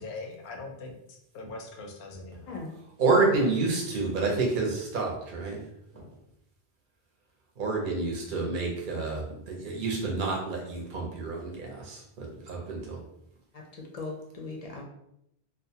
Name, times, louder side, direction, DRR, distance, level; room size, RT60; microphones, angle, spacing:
voice 1, 0.0-2.6 5.9-6.1, left 3 dB, 85° left, 3 dB, 0.8 m, -42 dB
voice 2, 3.0-5.6 7.6-13.0, right 3 dB, 55° right, -1 dB, 0.8 m, -28 dB
voice 3, 13.5-14.8, left 3 dB, 50° left, 0 dB, 0.5 m, -39 dB
2.4 x 2.2 x 2.7 m, 0.78 s
omnidirectional pair, 1.1 m